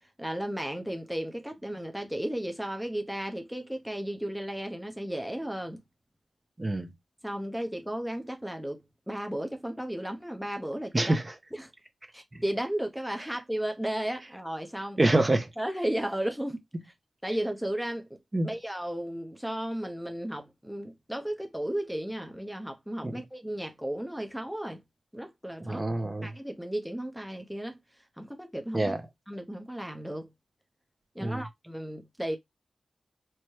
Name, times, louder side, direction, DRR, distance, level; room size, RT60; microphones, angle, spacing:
voice 1, 0.2-5.8 7.2-11.1 11.5-11.7 12.1-15.0 15.6-16.6 16.8-16.9 17.2-18.2 18.4-24.8 25.1-25.8 26.2-27.8 28.2-29.0 29.3-30.3 31.1-32.4, right 1 dB, ahead, 0.7 m, -34 dB
voice 2, 6.6-6.9 10.9-11.3 12.3-12.4 15.0-15.5 18.3-18.5 23.0-23.2 25.6-26.3 28.7-29.0 31.2-31.4, right 2 dB, 30° right, 0.8 m, -26 dB
4.5 x 2.1 x 3.2 m
cardioid pair, 45°, 0 cm